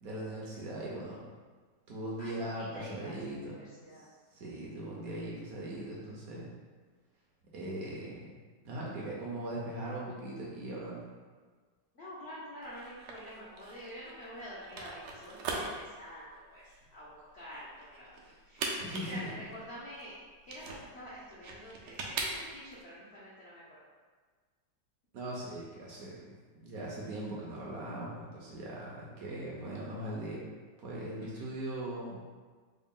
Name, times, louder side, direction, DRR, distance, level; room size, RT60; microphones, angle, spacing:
voice 1, 0.0-1.3 1.9-3.6 3.9-4.0 4.3-6.5 7.5-8.4 8.6-11.0 18.2-18.3 18.8-19.3 25.1-26.3 26.6-30.5 30.8-32.3, right 1 dB, 65° right, -4 dB, 1.0 m, -40 dB
voice 2, 2.2-4.1 11.9-23.6 31.2-31.4, equal, 65° left, -8 dB, 0.6 m, -47 dB
sound 1, 12.6-22.8, right 3 dB, 80° right, 1.2 m, -41 dB
3.9 x 2.2 x 3.5 m, 1.5 s
omnidirectional pair, 1.9 m